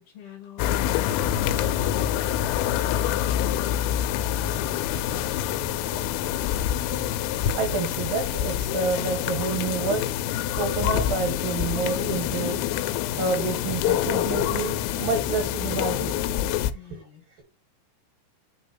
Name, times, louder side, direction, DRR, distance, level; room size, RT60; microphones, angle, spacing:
voice 1, 0.0-3.5 16.7-17.2, left 9 dB, 65° left, 1 dB, 2.8 m, -45 dB
sound 1, 0.6-16.7, left 11 dB, 90° left, 3.2 m, -26 dB
voice 2, 7.6-10.1 10.6-12.6 13.2-16.5, right 4 dB, 80° right, 4 dB, 2.0 m, -29 dB
8.5 x 3.0 x 5.7 m, 0.30 s
omnidirectional pair, 5.7 m